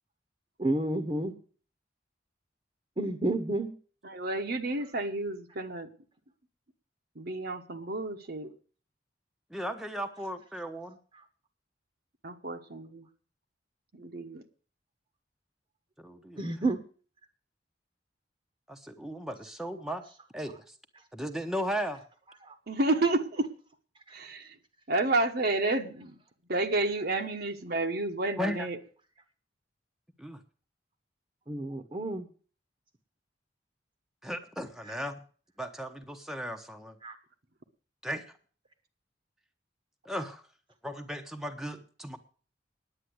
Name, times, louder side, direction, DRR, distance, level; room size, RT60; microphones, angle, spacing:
voice 1, 0.6-1.3 3.0-3.7 16.4-16.8 22.4-22.5 31.5-32.3 37.0-37.1, right 2 dB, 30° right, 6 dB, 1.0 m, -30 dB
voice 2, 4.0-5.9 7.1-8.5 12.2-13.1 13.9-14.4 22.7-23.5 24.1-24.6 24.9-26.2 26.5-28.8, right 2 dB, 60° right, 6 dB, 1.1 m, -30 dB
voice 3, 9.5-11.0 16.0-16.4 18.7-20.0 20.3-20.7 21.1-22.0 28.4-28.7 30.2-30.4 34.2-35.2 35.6-37.0 38.0-38.2 40.0-40.4 40.8-42.2, equal, ahead, 5 dB, 0.9 m, -36 dB
10.0 x 9.0 x 7.8 m, 0.42 s
head